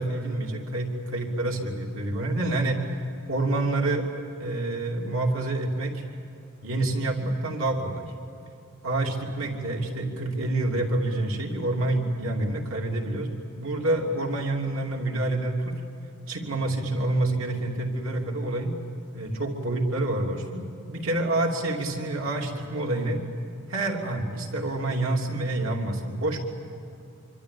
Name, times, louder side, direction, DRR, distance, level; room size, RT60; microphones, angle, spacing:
voice 1, 0.0-2.8 3.3-4.1 4.4-6.0 6.6-8.1 8.8-13.3 13.6-15.8 16.3-18.7 19.1-23.2 23.7-26.4, right 2 dB, 70° right, 1 dB, 3.1 m, -27 dB
26.5 x 25.0 x 8.6 m, 2.7 s
head